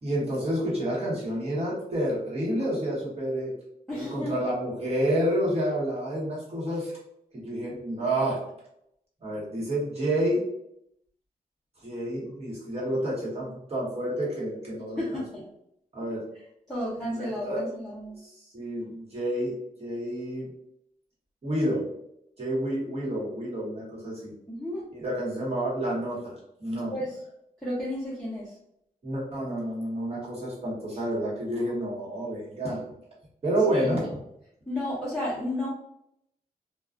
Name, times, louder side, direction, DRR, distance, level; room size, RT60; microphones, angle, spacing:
voice 1, 0.0-3.5 3.9-6.9 7.3-8.4 9.2-10.4 11.8-15.2 15.9-16.2 17.1-17.7 18.2-20.5 21.4-21.8 22.4-24.3 24.9-26.9 29.0-32.8 33.4-34.1, right 1 dB, 45° right, -6 dB, 1.1 m, -29 dB
voice 2, 3.9-4.3 15.0-15.4 16.7-18.2 24.5-24.8 26.9-27.2 27.6-28.5 30.9-31.0 33.7-34.1 34.7-35.7, left 1 dB, ahead, -10 dB, 0.7 m, -32 dB
2.3 x 2.3 x 2.4 m, 0.77 s
wide cardioid pair, 115°, 15 cm